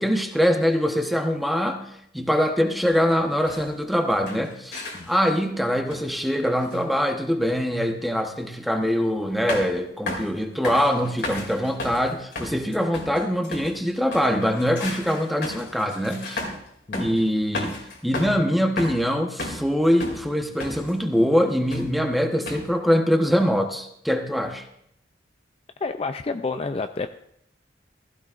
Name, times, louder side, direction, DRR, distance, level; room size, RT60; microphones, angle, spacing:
voice 1, 0.0-1.8 2.1-4.8 5.1-16.4 16.9-24.6, equal, ahead, 4 dB, 1.0 m, -23 dB
sound 1, 2.9-3.1 3.5-3.7 4.1-5.3 5.9-6.1 6.6-6.8 8.0-8.1 9.5-9.8 10.1-10.4 10.6-13.8 14.1-16.7 16.9-17.2 17.5-18.4 18.8-19.7 20.0-20.9 21.7-22.0 22.5-22.7, left 2 dB, 65° left, 2.6 m, -34 dB
voice 2, 25.8-27.1, left 3 dB, 30° left, 8 dB, 0.4 m, -29 dB
15.5 x 14.5 x 2.5 m, 0.73 s
head